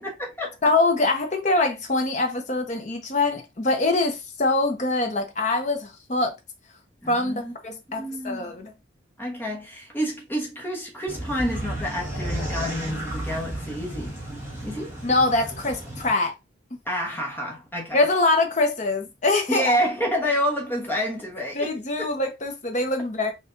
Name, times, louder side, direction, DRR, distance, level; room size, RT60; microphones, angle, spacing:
voice 1, 0.0-0.6 7.0-7.5 8.0-8.5 9.2-14.2 14.6-15.0 16.8-18.0 19.5-21.7 22.0-22.1, equal, 10° left, 1.2 m, -28 dB
voice 2, 0.6-6.3 7.1-7.3 7.6-8.7 15.0-16.3 17.9-19.7 21.5-23.3, left 2 dB, 35° left, 0.9 m, -23 dB
sound 1, 11.1-16.1, right 1 dB, 15° right, 1.2 m, -33 dB
5.6 x 2.6 x 2.6 m
head